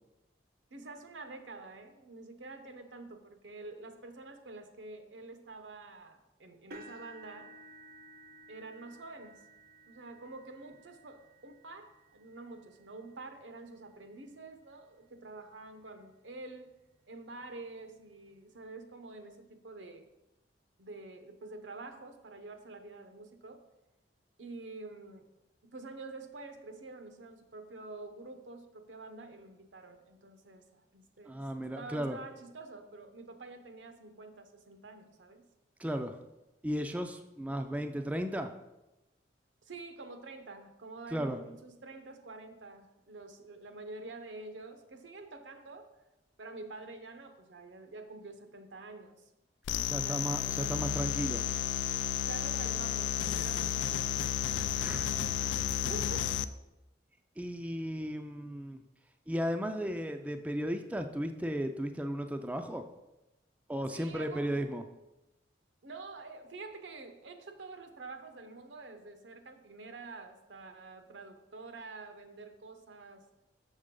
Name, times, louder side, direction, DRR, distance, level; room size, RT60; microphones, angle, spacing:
voice 1, 0.7-7.5 8.5-9.4 9.8-16.7 17.1-20.1 20.8-23.6 24.4-25.3 25.6-31.5 31.7-35.4 39.6-45.9 46.4-49.3 50.0-50.2 52.1-54.3 55.7-56.4 63.8-64.7 65.8-73.2, right 3 dB, 85° right, 8 dB, 0.8 m, -47 dB
sound 1, 6.7-14.7 15.4-15.6 16.0-16.1 17.5-17.6, right 1 dB, 55° right, 0.6 m, -56 dB
voice 2, 31.3-32.2 35.8-36.2 36.6-38.5 41.1-41.4 49.8-51.4 54.8-55.1 55.4-55.8 57.4-58.8 59.3-62.8 63.7-64.8, equal, 10° right, 6 dB, 0.3 m, -35 dB
sound 2, 49.7-56.4, left 10 dB, 90° left, 0.3 m, -32 dB
6.6 x 6.4 x 3.7 m, 0.97 s
head